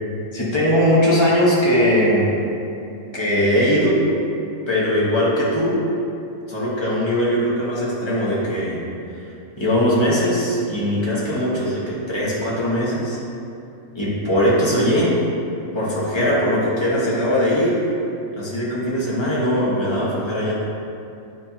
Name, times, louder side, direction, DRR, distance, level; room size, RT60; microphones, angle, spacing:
voice 1, 0.3-2.3 3.1-4.0 4.7-5.8 6.5-8.8 9.1-13.2 13.9-15.2 15.7-17.9 18.3-20.5, equal, 20° left, -7 dB, 1.4 m, -20 dB
9.8 x 3.8 x 2.9 m, 2.7 s
omnidirectional pair, 1.3 m